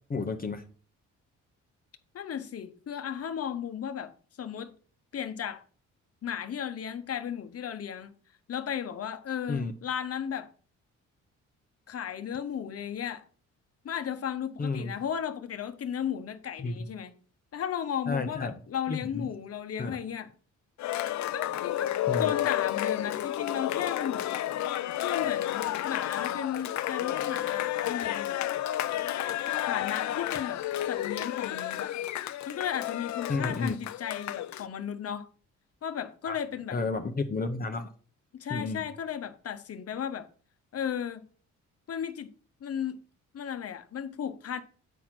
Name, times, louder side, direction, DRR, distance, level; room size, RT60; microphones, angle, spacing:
voice 1, 0.1-0.7 9.5-9.7 14.6-14.9 16.6-16.7 18.1-18.6 18.9-19.3 19.8-20.0 22.1-22.3 33.3-33.8 36.2-36.4 36.7-37.9 38.5-38.8, left 3 dB, 30° left, 1.0 m, -31 dB
voice 2, 2.1-4.1 4.4-4.7 5.1-5.6 6.2-8.2 8.5-10.5 11.9-13.2 13.8-17.1 17.5-20.3 21.2-24.3 25.0-28.4 29.6-31.9 32.5-35.3 35.8-36.8 38.3-40.3 40.7-41.3 41.9-42.3 42.6-43.0 43.3-44.6, left 8 dB, 50° left, 1.2 m, -35 dB
Cheering, 20.8-34.6, left 13 dB, 70° left, 0.6 m, -31 dB
9.3 x 4.3 x 6.0 m
cardioid pair, 90°, 30 cm